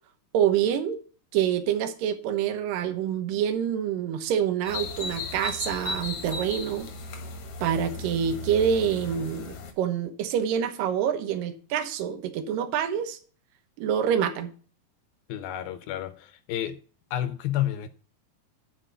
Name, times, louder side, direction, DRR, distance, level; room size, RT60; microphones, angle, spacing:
voice 1, 0.3-1.0 1.3-6.9 7.6-13.2 13.8-14.5, right 9 dB, 70° right, 2.5 m, -26 dB
sound 1, 4.7-9.7, left 3 dB, 60° left, 1.6 m, -36 dB
voice 2, 15.3-16.8 17.1-17.9, left 12 dB, 80° left, 2.4 m, -30 dB
10.0 x 4.9 x 6.7 m
omnidirectional pair, 4.5 m